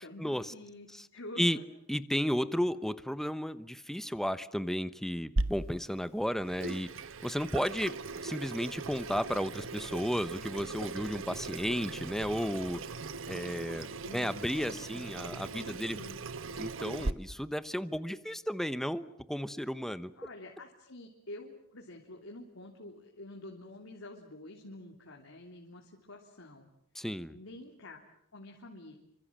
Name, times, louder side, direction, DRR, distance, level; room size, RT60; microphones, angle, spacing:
voice 1, 0.0-1.5 14.0-16.2 20.2-26.7 27.3-28.0 28.3-29.0, left 1 dB, 75° left, 0 dB, 3.3 m, -48 dB
voice 2, 1.9-6.9 7.2-8.0 8.2-12.8 13.3-16.0 16.6-20.1 26.9-27.3, equal, ahead, 13 dB, 1.0 m, -33 dB
Water tap faucet / Sink (filling or washing), 5.4-17.1, right 3 dB, 70° right, 1.1 m, -39 dB
28.0 x 25.5 x 7.5 m, 0.73 s
head